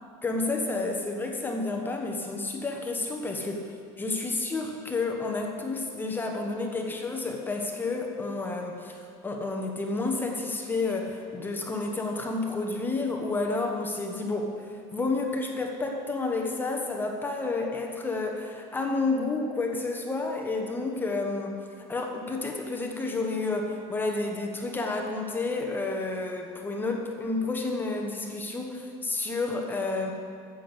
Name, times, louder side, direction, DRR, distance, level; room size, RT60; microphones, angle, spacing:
voice 1, 0.2-21.6 21.9-30.1, left 3 dB, 15° left, 2 dB, 1.1 m, -30 dB
11.0 x 8.3 x 6.4 m, 2.4 s
supercardioid pair, 130°, 14 cm